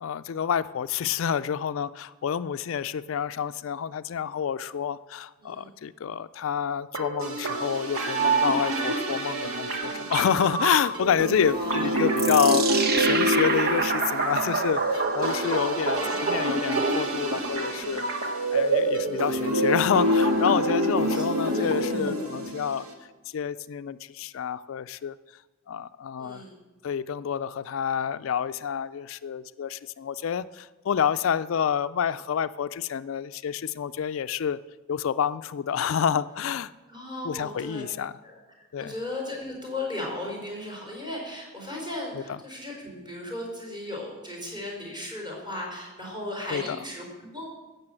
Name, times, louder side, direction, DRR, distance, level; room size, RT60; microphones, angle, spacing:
voice 1, 0.0-22.9 23.3-25.1 25.7-26.4 26.8-34.6 34.9-36.7 37.2-38.1 38.7-38.9 42.1-42.4 46.5-46.8, left 7 dB, 65° left, 14 dB, 0.4 m, -28 dB
voice 2, 5.4-5.7 11.5-11.9 16.0-16.4 18.9-19.2 21.1-21.7 26.2-26.5 36.9-37.8 38.2-38.4 38.8-47.5, left 1 dB, 20° right, -1 dB, 4.5 m, -36 dB
sound 1, 6.9-22.9, right 1 dB, 85° right, 2.0 m, -27 dB
sound 2, 12.2-17.5, right 4 dB, 50° right, 1.1 m, -28 dB
15.0 x 6.8 x 7.7 m, 1.2 s
head